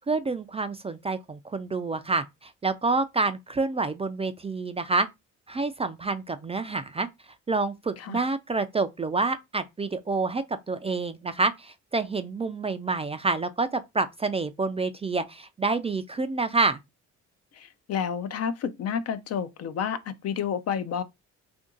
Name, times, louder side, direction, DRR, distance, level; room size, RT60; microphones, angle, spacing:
voice 1, 0.1-5.1 5.5-7.1 7.5-16.8, right 3 dB, 20° right, 0.3 m, -28 dB
voice 2, 17.5-21.0, left 7 dB, 55° left, 0.6 m, -30 dB
2.8 x 2.6 x 3.7 m
cardioid pair, 90°, 30 cm